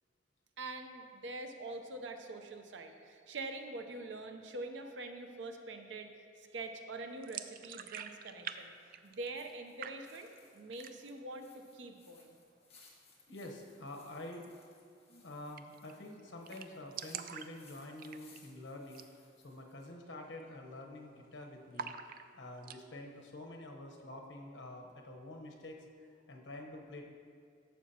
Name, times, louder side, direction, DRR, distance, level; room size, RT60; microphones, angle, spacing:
voice 1, 0.6-6.1 6.4-12.4, right 2 dB, 80° right, 5 dB, 0.7 m, -45 dB
sound 1, 7.2-8.6 8.8-9.5 9.8-10.4 10.7-11.2 11.6-11.7 12.0-12.6 14.3-14.5 14.8-14.9 15.1-15.2 15.6-15.9 16.2-16.3 16.5-18.5 18.9-19.1 19.5-19.6 20.1-20.4 20.7-21.3 21.7-22.8, right 8 dB, 50° right, 0.4 m, -45 dB
sound 2, 7.6-19.9, left 4 dB, 35° left, 1.5 m, -65 dB
voice 2, 13.3-14.5 15.1-19.0 19.4-25.8 26.3-27.0, left 1 dB, 85° left, 1 dB, 1.0 m, -48 dB
12.0 x 7.1 x 2.9 m, 2.2 s
head